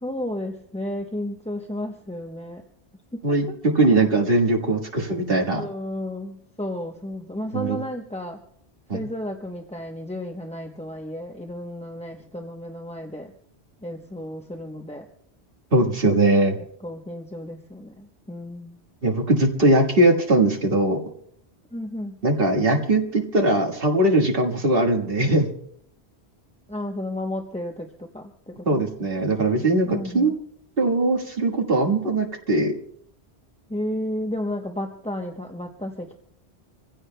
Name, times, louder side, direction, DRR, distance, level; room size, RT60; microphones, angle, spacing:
voice 1, 0.0-2.6 3.1-3.4 5.5-8.4 8.9-13.3 13.8-15.1 16.6-18.8 21.7-22.2 26.7-28.9 29.9-30.3 33.7-36.2, left 1 dB, 5° left, 2 dB, 0.8 m, -33 dB
voice 2, 3.8-5.6 7.5-7.8 8.9-9.0 15.7-16.6 19.0-21.0 22.2-25.5 28.7-30.3 30.8-32.7, right 2 dB, 60° right, 1 dB, 1.9 m, -20 dB
26.5 x 16.0 x 2.2 m, 0.68 s
omnidirectional pair, 1.1 m